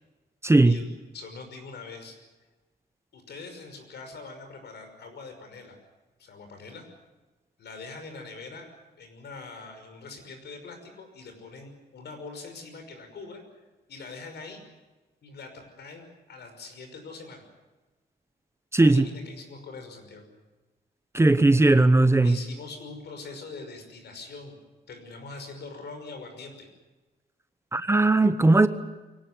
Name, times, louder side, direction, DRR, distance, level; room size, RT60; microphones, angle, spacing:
voice 1, 0.4-0.8 18.7-19.0 21.1-22.4 27.7-28.7, right 2 dB, 15° right, 11 dB, 0.9 m, -18 dB
voice 2, 1.1-2.2 3.1-5.8 6.2-6.9 7.6-13.4 13.9-14.6 15.2-17.5 18.8-20.2 22.2-24.6 24.9-26.7, left 3 dB, 75° left, 6 dB, 5.8 m, -43 dB
24.0 x 18.0 x 9.5 m, 1.2 s
wide cardioid pair, 140°, 18 cm